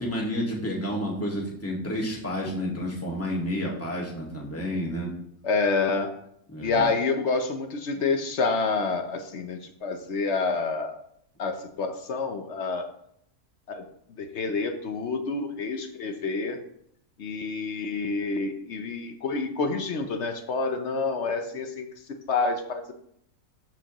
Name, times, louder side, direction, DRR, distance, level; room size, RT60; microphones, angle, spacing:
voice 1, 0.0-5.1 6.5-6.9, equal, 10° left, -3 dB, 1.7 m, -30 dB
voice 2, 5.4-6.1 6.6-11.0 11.4-12.9 13.7-13.8 14.2-16.6 17.2-21.9 22.3-22.9, left 4 dB, 55° left, 7 dB, 0.8 m, -28 dB
13.0 x 4.9 x 2.9 m, 0.71 s
omnidirectional pair, 1.6 m